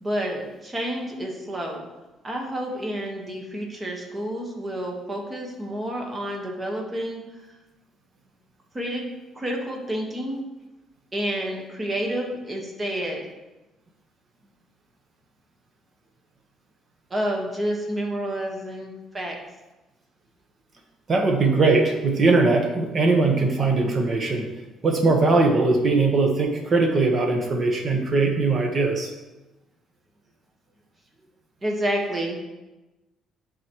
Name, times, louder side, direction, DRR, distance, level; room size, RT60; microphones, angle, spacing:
voice 1, 0.0-1.8 2.2-7.4 8.7-9.0 9.3-10.4 11.1-13.2 17.1-19.4 31.6-32.4, equal, 25° right, 0 dB, 1.5 m, -29 dB
voice 2, 21.1-24.5 24.8-29.1, right 3 dB, 40° right, 2 dB, 1.3 m, -20 dB
11.0 x 4.1 x 3.1 m, 1.1 s
cardioid pair, 105°, 0 cm